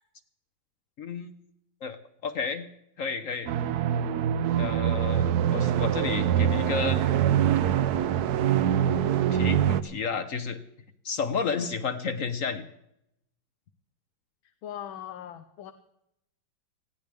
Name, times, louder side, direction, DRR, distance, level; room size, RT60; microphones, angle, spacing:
voice 1, 1.0-1.3 1.8-2.7 3.0-3.5 4.6-7.0 9.3-10.6 11.0-12.6, left 5 dB, 55° left, 10 dB, 1.0 m, -31 dB
sound 1, 3.5-9.8, right 10 dB, 65° right, 1.0 m, -24 dB
voice 2, 14.6-15.7, left 10 dB, 85° left, 8 dB, 1.6 m, -40 dB
20.5 x 15.5 x 3.5 m, 0.80 s
omnidirectional pair, 2.1 m